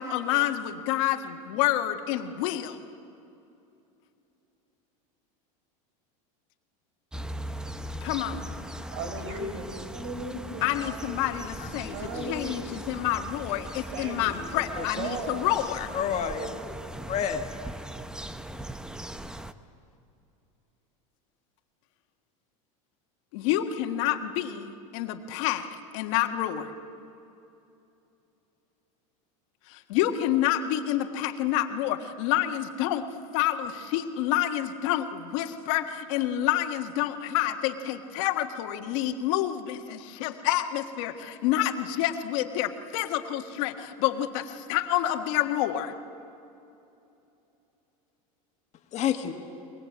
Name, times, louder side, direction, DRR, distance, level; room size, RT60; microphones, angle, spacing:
voice 1, 0.0-2.8 8.0-8.5 10.6-15.9 23.3-26.7 29.7-33.1 33.3-45.9, left 12 dB, 70° left, 6 dB, 1.6 m, -28 dB
sound 1, 7.1-19.5, right 1 dB, 5° right, 0.8 m, -39 dB
voice 2, 8.9-11.4 11.9-12.7 13.9-15.5 16.2-16.9, right 3 dB, 65° right, 6 dB, 5.1 m, -37 dB
voice 3, 11.8-12.3 15.9-16.5 17.1-17.4 48.9-49.3, left 9 dB, 40° left, 5 dB, 1.9 m, -29 dB
22.5 x 21.0 x 8.6 m, 2.8 s
supercardioid pair, 120°, 18 cm